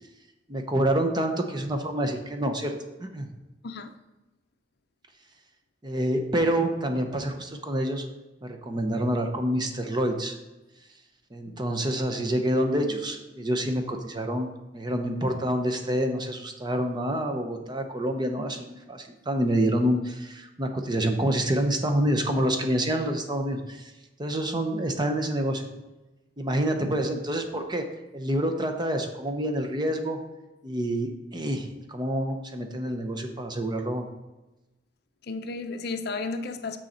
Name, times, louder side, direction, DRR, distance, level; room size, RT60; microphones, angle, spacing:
voice 1, 0.5-2.7 3.0-3.3 5.8-8.0 8.4-10.4 11.3-23.9 24.2-25.7 26.4-27.9 28.1-30.2 30.6-34.1, right 1 dB, 25° right, 5 dB, 0.7 m, -27 dB
voice 2, 11.5-11.8 35.2-36.8, left 3 dB, 55° left, 8 dB, 0.5 m, -34 dB
6.5 x 6.3 x 4.3 m, 1.0 s
head